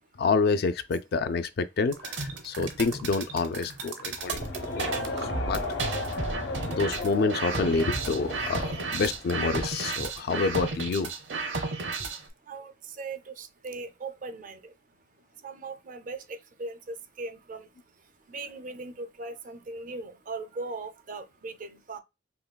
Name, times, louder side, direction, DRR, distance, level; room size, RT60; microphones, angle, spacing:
voice 1, 0.2-4.5 4.8-5.0 5.4-5.6 6.7-11.1, left 4 dB, 60° left, 0.4 m, -28 dB
sound 1, 1.9-12.3, right 3 dB, 75° right, 0.8 m, -33 dB
voice 2, 4.0-5.5 6.0-6.8 10.1-10.3 11.5-22.0, right 3 dB, 45° right, 0.5 m, -41 dB
Crowd, 4.2-9.4, left 2 dB, 80° left, 0.8 m, -35 dB
5.6 x 2.3 x 2.2 m
head